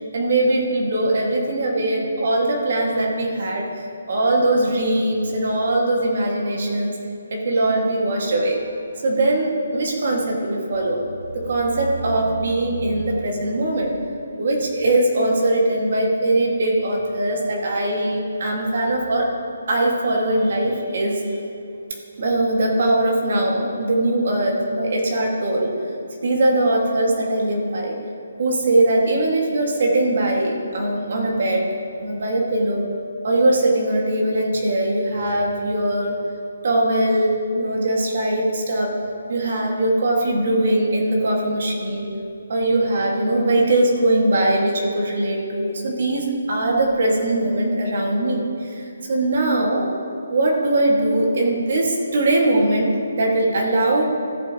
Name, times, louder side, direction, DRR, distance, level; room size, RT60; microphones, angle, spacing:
voice 1, 0.1-7.0 7.3-8.7 9.0-11.0 11.3-14.0 14.4-19.3 19.7-21.4 22.2-25.7 26.2-28.0 28.4-32.9 33.2-36.2 36.6-38.9 39.3-42.1 42.5-49.9 50.3-54.0, right 1 dB, 50° right, -1 dB, 1.9 m, -21 dB
15.5 x 7.3 x 3.0 m, 2.6 s
hypercardioid pair, 170°, 0 cm